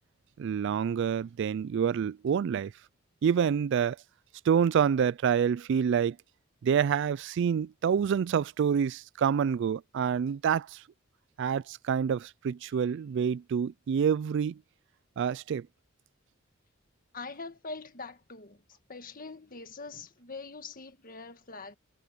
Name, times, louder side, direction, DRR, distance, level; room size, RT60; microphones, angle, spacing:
voice 1, 0.4-2.7 3.2-4.0 4.5-6.2 6.6-10.8 11.4-14.6 15.2-15.7, right 7 dB, 60° right, 0.3 m, -27 dB
voice 2, 17.1-18.6 18.9-21.8, left 3 dB, 45° left, 1.7 m, -43 dB
head